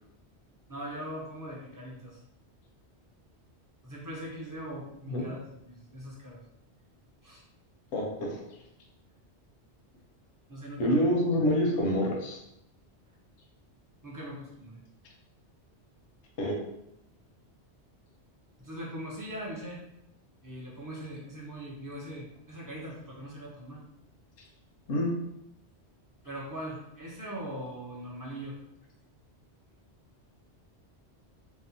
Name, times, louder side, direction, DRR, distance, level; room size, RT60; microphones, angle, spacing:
voice 1, 0.7-2.2 3.8-5.4 5.7-6.4 7.2-7.4 10.5-11.0 14.0-14.8 18.6-19.8 20.4-23.8 26.2-28.6, right 1 dB, 25° right, -4 dB, 0.4 m, -41 dB
voice 2, 7.9-8.4 10.8-12.4 16.4-16.5 24.9-25.1, equal, 80° left, -1 dB, 0.9 m, -27 dB
2.7 x 2.1 x 2.6 m, 0.82 s
omnidirectional pair, 1.2 m